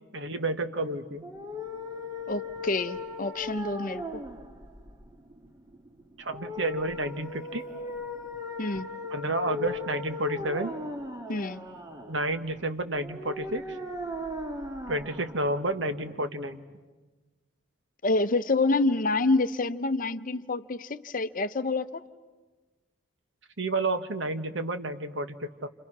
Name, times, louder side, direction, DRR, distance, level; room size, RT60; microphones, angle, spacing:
voice 1, 0.1-1.3 6.2-7.6 9.1-10.7 12.1-13.8 14.9-16.6 23.6-25.7, right 2 dB, 65° right, 9 dB, 1.4 m, -30 dB
sound 1, 1.2-16.2, left 2 dB, 15° right, 1.8 m, -38 dB
voice 2, 2.3-4.2 8.6-8.9 11.3-11.6 18.0-22.0, left 3 dB, 40° left, 12 dB, 0.7 m, -27 dB
29.5 x 28.5 x 6.1 m, 1.3 s
head